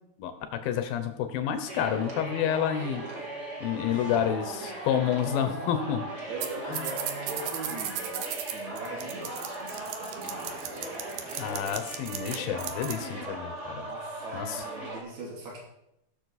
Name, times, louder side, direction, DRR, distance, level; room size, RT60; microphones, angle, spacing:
voice 1, 0.2-3.0 3.6-6.0 6.7-6.9 11.4-13.9 14.3-14.6, left 9 dB, 75° left, 8 dB, 2.2 m, -29 dB
sound 1, 1.7-15.0, right 1 dB, 35° right, 1.2 m, -38 dB
voice 2, 3.7-4.3 6.3-10.9 13.7-15.6, right 2 dB, 65° right, -2 dB, 4.6 m, -41 dB
sound 2, 6.4-6.5 6.7-13.1, right 10 dB, 80° right, 1.8 m, -35 dB
16.5 x 6.8 x 4.0 m, 0.83 s
omnidirectional pair, 4.9 m